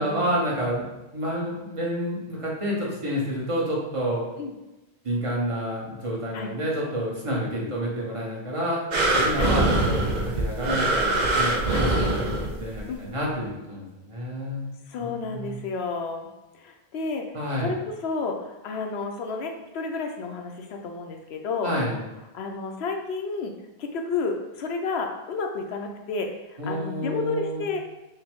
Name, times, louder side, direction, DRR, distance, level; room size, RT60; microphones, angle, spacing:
voice 1, 0.0-4.2 5.0-8.8 9.1-11.1 11.4-12.2 12.6-14.7 15.0-15.6 17.3-17.7 21.6-22.0 26.6-27.6, equal, 35° right, -4 dB, 1.0 m, -29 dB
sound 1, 8.9-12.8 13.4-13.5, right 2 dB, 50° right, 0.7 m, -23 dB
voice 2, 14.9-16.3 16.5-17.3 17.6-17.8 18.0-21.7 22.3-23.5 23.8-27.8, left 4 dB, 80° left, 3 dB, 0.9 m, -31 dB
5.5 x 2.1 x 3.6 m, 1.0 s
omnidirectional pair, 1.1 m